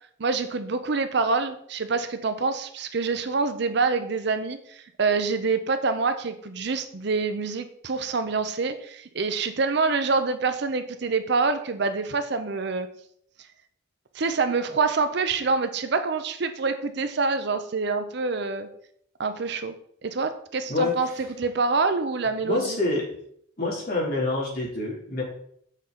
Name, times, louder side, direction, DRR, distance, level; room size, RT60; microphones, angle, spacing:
voice 1, 0.2-12.9 14.1-18.7 19.2-19.7 20.0-22.8, right 4 dB, 55° right, 10 dB, 0.6 m, -26 dB
voice 2, 20.7-21.2 22.4-23.0 23.6-25.2, left 2 dB, 45° left, -4 dB, 2.8 m, -27 dB
7.2 x 6.4 x 3.8 m, 0.67 s
head